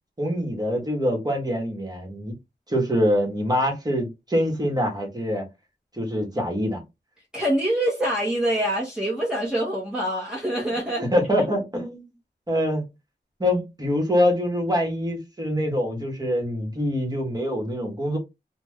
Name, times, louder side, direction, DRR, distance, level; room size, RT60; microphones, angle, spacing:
voice 1, 0.2-2.3 2.7-5.4 5.9-6.8 11.0-12.0 12.5-12.8 13.4-18.2, equal, 20° right, 1.2 m, -24 dB
voice 2, 7.3-11.0, right 1 dB, 5° right, 1.0 m, -25 dB
2.5 x 2.2 x 3.4 m
wide cardioid pair, 85°, 18 cm